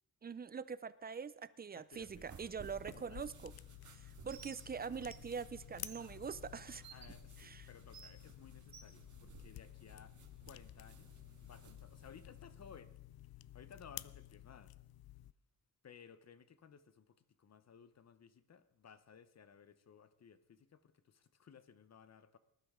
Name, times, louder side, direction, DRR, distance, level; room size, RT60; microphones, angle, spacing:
voice 1, 0.2-3.5 4.2-6.8 7.4-7.7, right 6 dB, 25° right, 16 dB, 0.5 m, -44 dB
voice 2, 1.7-2.5 2.9-3.2 6.9-10.1 10.4-13.0 13.5-14.8 15.8-22.4, left 7 dB, 45° left, 13 dB, 0.8 m, -59 dB
sound 1, 1.9-12.8, right 4 dB, 55° right, 1.9 m, -59 dB
sound 2, 2.6-15.3, left 14 dB, 85° left, 0.5 m, -53 dB
Bird, 4.3-4.6 5.0-5.2 5.8-6.0 6.8-7.1 7.9-8.1 8.7-8.9, right 8 dB, 75° right, 1.7 m, -54 dB
19.5 x 11.5 x 3.7 m, 0.83 s
wide cardioid pair, 130°, 36 cm